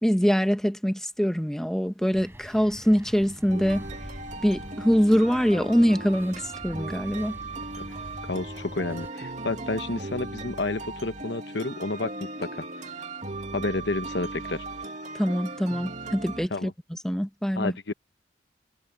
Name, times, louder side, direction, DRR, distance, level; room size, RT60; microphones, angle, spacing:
voice 1, 0.0-3.8 4.4-7.4 15.2-17.7, equal, 5° left, 1.0 m, -24 dB
sound 1, 2.1-9.1, equal, 15° right, 6.2 m, -45 dB
sound 2, 3.5-16.5, right 2 dB, 40° right, 2.4 m, -37 dB
voice 2, 8.2-12.1 12.4-12.6 13.5-14.6 16.5-16.7 17.6-17.9, left 2 dB, 70° left, 1.1 m, -30 dB
head